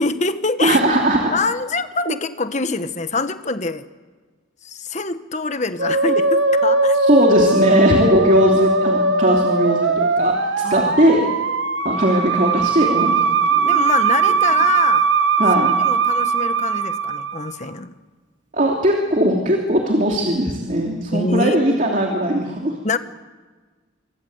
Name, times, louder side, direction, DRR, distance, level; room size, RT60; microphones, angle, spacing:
voice 1, 0.0-0.8 1.3-3.9 4.6-7.0 10.6-11.1 13.6-15.1 15.6-17.9 21.1-21.8 22.8-23.0, left 3 dB, 40° left, 10 dB, 1.3 m, -25 dB
voice 2, 0.6-1.3 7.0-11.3 11.8-13.2 13.6-13.8 15.4-15.7 18.5-22.7, right 1 dB, 40° right, 1 dB, 3.0 m, -18 dB
Musical instrument, 5.8-17.6, right 3 dB, 75° right, 1.7 m, -19 dB
26.5 x 26.0 x 8.0 m, 1.4 s
head